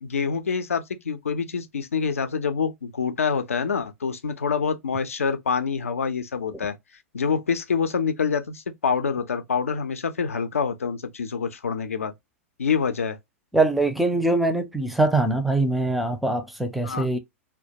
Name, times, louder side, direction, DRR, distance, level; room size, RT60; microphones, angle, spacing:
voice 1, 0.0-6.7 7.1-12.1 12.6-13.2 16.8-17.1, left 6 dB, 80° left, 0.4 m, -26 dB
voice 2, 13.5-17.2, right 2 dB, ahead, 0.4 m, -23 dB
2.2 x 2.1 x 2.7 m
figure-of-eight pair, 105°, 7 cm